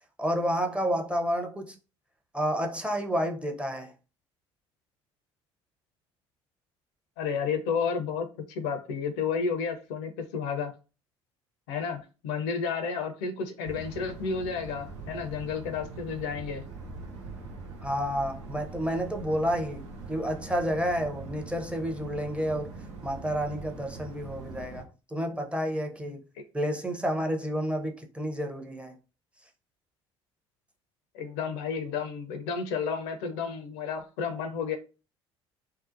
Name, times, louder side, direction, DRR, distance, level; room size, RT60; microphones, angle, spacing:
voice 1, 0.2-1.8 2.3-3.9 17.8-22.7 23.0-26.2 26.5-28.9, equal, 5° right, 0.6 m, -30 dB
voice 2, 7.2-10.7 11.7-16.6 31.1-34.8, left 6 dB, 70° left, 0.5 m, -31 dB
sound 1, 13.6-24.8, right 4 dB, 80° right, 0.6 m, -42 dB
2.7 x 2.0 x 2.5 m
hypercardioid pair, 60°, 15 cm